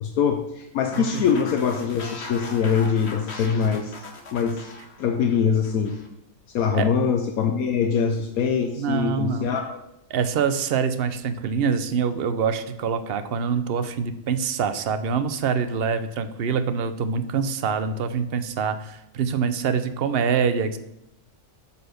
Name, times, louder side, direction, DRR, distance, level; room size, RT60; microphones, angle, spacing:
voice 1, 0.0-3.9 4.3-4.6 5.0-5.9 6.5-9.8, left 6 dB, 75° left, 5 dB, 1.1 m, -23 dB
sound 1, 0.9-6.1, left 3 dB, 50° left, 1.3 m, -39 dB
voice 2, 8.8-9.5 10.1-20.8, right 6 dB, 55° right, 10 dB, 0.7 m, -25 dB
9.5 x 4.2 x 6.6 m, 0.79 s
omnidirectional pair, 1.6 m